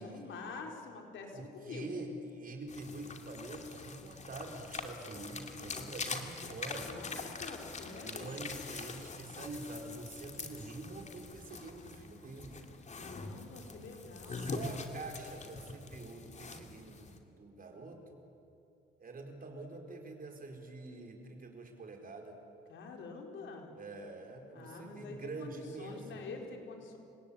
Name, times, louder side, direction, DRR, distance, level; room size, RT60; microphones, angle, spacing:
voice 1, 0.0-1.9 6.8-8.4 12.9-14.4 22.7-23.7 24.5-27.0, left 4 dB, 75° left, 2 dB, 4.6 m, -46 dB
voice 2, 1.3-6.9 8.0-12.6 14.2-18.2 19.0-22.4 23.7-26.3, right 2 dB, 45° right, 3 dB, 4.6 m, -46 dB
sound 1, 2.7-17.2, left 4 dB, 35° left, 2.6 m, -44 dB
28.5 x 17.5 x 8.8 m, 2.9 s
cardioid pair, 90°, 20 cm